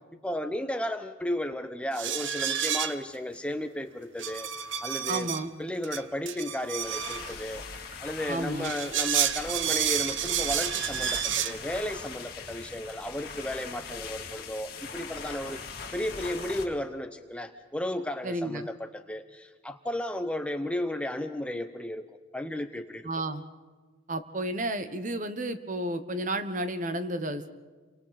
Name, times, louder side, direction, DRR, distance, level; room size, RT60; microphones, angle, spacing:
voice 1, 0.2-4.5 4.8-5.3 5.6-7.6 8.0-15.6 15.9-22.1 22.3-23.1, left 1 dB, 5° left, 7 dB, 0.7 m, -34 dB
sound 1, 1.9-3.2 4.2-5.4 5.8-7.3 8.5-11.6, right 9 dB, 70° right, 0.9 m, -30 dB
voice 2, 5.1-5.5 8.3-8.7 18.2-18.6 23.0-23.4 24.1-27.5, right 1 dB, 40° right, 10 dB, 1.1 m, -32 dB
sound 2, 6.8-16.6, left 5 dB, 50° left, 2.8 m, -41 dB
30.0 x 25.0 x 4.2 m, 1.4 s
head